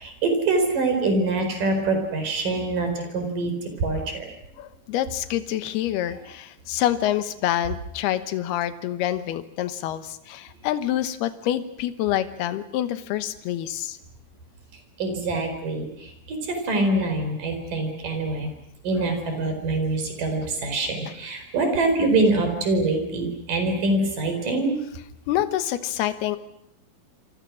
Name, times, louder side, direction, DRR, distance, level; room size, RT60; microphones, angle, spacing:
voice 1, 0.0-3.5 3.8-4.2 15.0-16.1 16.4-18.5 18.8-24.8, right 2 dB, 55° right, 5 dB, 6.1 m, -24 dB
voice 2, 4.6-14.0 21.6-21.7 25.3-26.4, left 12 dB, 80° left, 11 dB, 3.1 m, -27 dB
27.5 x 27.0 x 6.3 m, 0.73 s
omnidirectional pair, 4.6 m